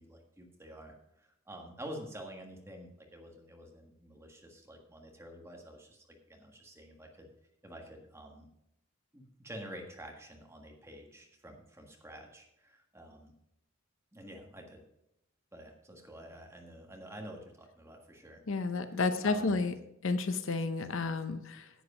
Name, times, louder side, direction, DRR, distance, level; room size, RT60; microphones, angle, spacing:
voice 1, 0.0-7.3 7.6-8.5 9.1-13.3 14.1-14.8 15.5-18.4 18.8-19.7, right 1 dB, 10° right, 1 dB, 1.6 m, -49 dB
voice 2, 18.5-19.7 20.0-21.7, left 3 dB, 65° left, 10 dB, 0.7 m, -31 dB
10.5 x 8.0 x 4.9 m, 0.84 s
head